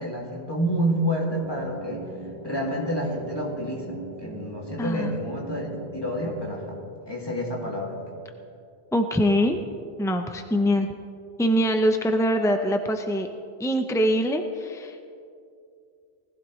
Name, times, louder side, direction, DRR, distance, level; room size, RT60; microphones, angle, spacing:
voice 1, 0.0-2.1 2.4-8.0, equal, 25° left, -3 dB, 2.4 m, -29 dB
sound 1, 1.4-6.5, right 2 dB, 40° right, 1.7 m, -40 dB
voice 2, 4.8-5.1 8.9-9.6 10.0-10.9 11.4-13.3 13.6-15.1, equal, 5° left, 5 dB, 0.3 m, -23 dB
20.0 x 15.5 x 3.1 m, 2.5 s
omnidirectional pair, 1.1 m